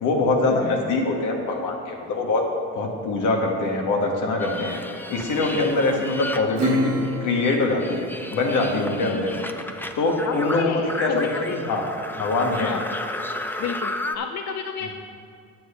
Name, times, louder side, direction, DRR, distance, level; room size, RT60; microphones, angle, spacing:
voice 1, 0.0-2.5 2.7-4.8 5.1-9.4 10.0-11.9 12.1-12.7, left 2 dB, 85° left, 1 dB, 1.5 m, -23 dB
sound 1, 4.4-7.2 7.4-14.2, left 1 dB, 5° left, 0.5 m, -33 dB
voice 2, 5.7-6.1 9.1-9.3 10.2-11.6 12.6-12.8 13.6-14.9, left 6 dB, 60° left, 6 dB, 0.6 m, -32 dB
Acoustic guitar / Strum, 6.5-9.5, right 1 dB, 80° right, 0.9 m, -29 dB
8.5 x 7.6 x 5.6 m, 2.3 s
cardioid pair, 90°, 30 cm